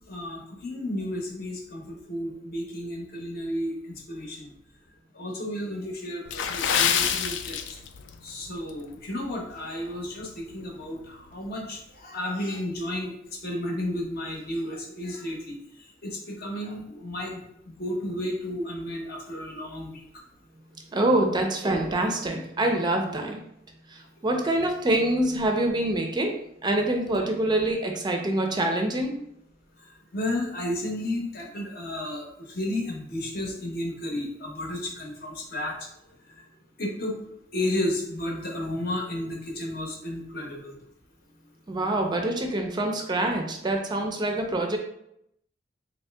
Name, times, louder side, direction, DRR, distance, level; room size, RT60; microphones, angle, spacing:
voice 1, 0.0-4.5 5.1-7.8 8.2-20.0 30.1-35.7 36.8-37.2 37.5-40.8, left 1 dB, 55° left, 0 dB, 0.8 m, -33 dB
Water / Splash splatter, 6.2-8.2 8.5-8.7 9.3-9.5 9.9-10.0, left 8 dB, 80° left, 0.3 m, -26 dB
voice 2, 20.9-23.4 23.9-29.2 41.7-44.8, right 1 dB, 25° right, 3 dB, 0.4 m, -25 dB
3.0 x 2.7 x 3.3 m, 0.78 s
head